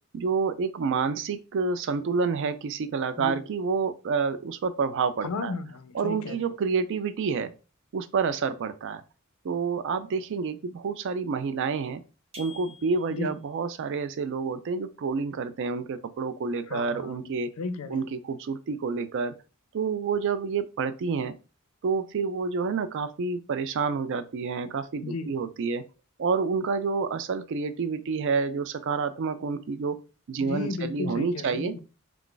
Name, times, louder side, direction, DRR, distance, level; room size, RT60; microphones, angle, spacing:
voice 1, 0.1-5.5 5.9-7.5 7.9-9.0 9.4-12.0 12.4-17.5 17.9-19.3 19.7-21.3 21.8-25.8 26.2-30.0 30.3-31.7, right 5 dB, 60° right, 0.3 m, -28 dB
voice 2, 5.2-6.4 13.1-13.4 16.7-18.0 25.0-25.3 30.4-31.8, left 3 dB, 80° left, 0.5 m, -34 dB
sound 1, 12.3-13.4, left 3 dB, 30° right, 0.9 m, -47 dB
2.4 x 2.4 x 3.8 m
head